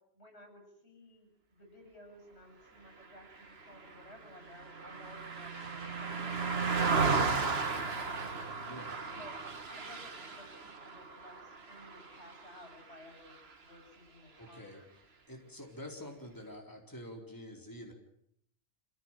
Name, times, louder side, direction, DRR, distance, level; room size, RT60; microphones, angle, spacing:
voice 1, 0.1-7.3 7.7-8.4 9.2-14.8, left 1 dB, 85° left, 3 dB, 8.3 m, -55 dB
Car passing by, 3.4-12.9 13.3-13.5, right 4 dB, 70° right, 1.9 m, -35 dB
voice 2, 8.7-9.3 14.4-14.8 15.3-17.9, left 1 dB, 20° left, 1 dB, 4.3 m, -47 dB
27.5 x 16.5 x 9.1 m, 0.72 s
omnidirectional pair, 1.1 m